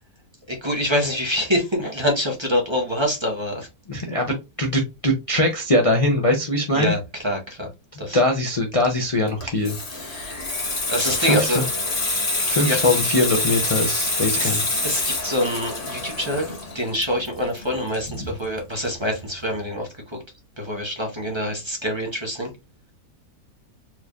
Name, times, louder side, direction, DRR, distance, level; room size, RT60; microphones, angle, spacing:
voice 1, 0.5-3.7 6.7-7.7 8.0-8.2 9.9-10.4 10.9-11.6 12.3-12.8 14.4-20.2 20.6-22.5, left 1 dB, 20° right, 0.8 m, -26 dB
voice 2, 3.9-6.9 7.9-9.7 11.2-11.6 12.5-14.6 18.2-18.3, left 1 dB, 60° left, 0.3 m, -22 dB
Water tap faucet / Sink (filling or washing), 9.3-18.6 18.9-19.1, left 2 dB, 35° left, 1.4 m, -26 dB
4.5 x 3.2 x 2.4 m
omnidirectional pair, 1.8 m